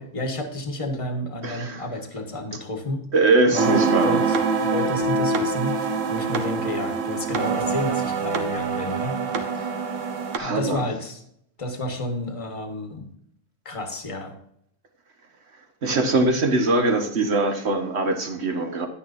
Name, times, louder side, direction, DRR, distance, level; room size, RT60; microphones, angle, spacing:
voice 1, 0.0-3.0 3.5-9.7 10.4-11.2 11.6-13.1 13.6-14.3, left 1 dB, 25° left, 5 dB, 1.4 m, -31 dB
voice 2, 1.4-1.8 3.1-4.2 10.3-10.9 15.8-18.9, right 2 dB, 55° right, 5 dB, 1.6 m, -22 dB
sound 1, 3.5-10.4, right 4 dB, 75° right, 1.4 m, -25 dB
10.5 x 10.0 x 2.6 m, 0.71 s
omnidirectional pair, 1.3 m